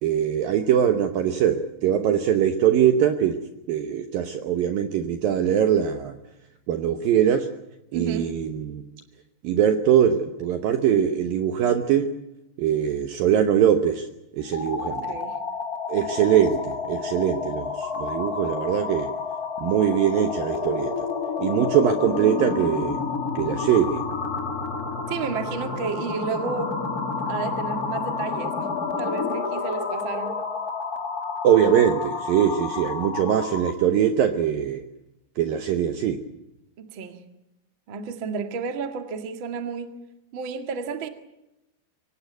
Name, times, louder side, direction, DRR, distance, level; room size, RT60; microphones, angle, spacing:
voice 1, 0.0-3.4 3.7-6.2 6.7-7.5 7.9-8.8 9.4-12.1 12.6-14.1 14.4-15.1 15.9-19.1 19.6-20.9 21.4-23.0 23.4-24.0 31.4-34.8 35.4-36.2, right 9 dB, 70° right, 8 dB, 2.3 m, -22 dB
voice 2, 7.9-8.3 15.0-15.4 25.1-26.8 27.3-30.4 36.8-37.2 37.9-39.9 40.3-41.1, right 5 dB, 45° right, 7 dB, 1.6 m, -32 dB
sound 1, 14.4-33.8, left 5 dB, 50° left, 1.1 m, -30 dB
24.5 x 17.5 x 9.3 m, 0.93 s
omnidirectional pair, 5.2 m